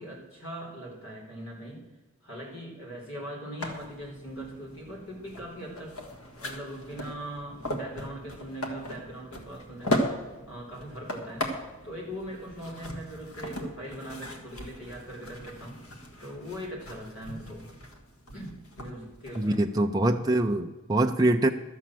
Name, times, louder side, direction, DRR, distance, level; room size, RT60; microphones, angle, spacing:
voice 1, 0.0-1.9 2.2-6.0 6.4-10.2 10.5-11.5 11.8-17.7 18.3-19.7, right 1 dB, 65° left, -1 dB, 4.1 m, -41 dB
sound 1, 3.6-19.6, left 1 dB, 85° left, 1.9 m, -37 dB
voice 2, 19.4-21.5, right 1 dB, 15° right, 2 dB, 0.5 m, -24 dB
13.0 x 7.2 x 7.6 m, 1.2 s
head